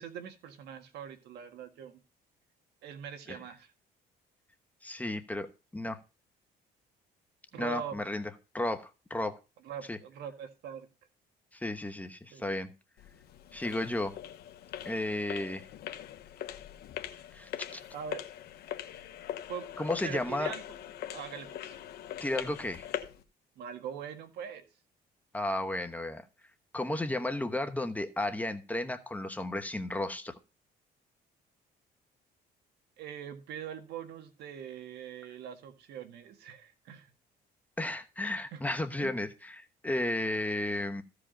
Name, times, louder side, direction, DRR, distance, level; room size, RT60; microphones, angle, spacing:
voice 1, 0.0-2.0 2.8-3.7 7.5-8.0 9.6-10.9 12.3-12.4 17.9-18.2 19.5-19.7 20.0-20.6 21.1-21.8 23.6-24.7 33.0-37.1 38.5-38.6 39.0-39.2, right 8 dB, 75° right, 1.7 m, -42 dB
voice 2, 4.8-6.0 7.6-9.4 9.9-10.0 11.5-12.7 13.5-14.1 14.8-15.7 17.3-17.8 19.8-20.5 22.2-22.9 25.3-26.3 26.7-30.4 37.8-41.0, left 1 dB, 10° left, 1.0 m, -33 dB
sound 1, 13.0-23.2, left 11 dB, 70° left, 1.1 m, -42 dB
15.0 x 5.0 x 5.1 m
cardioid pair, 110°, 17 cm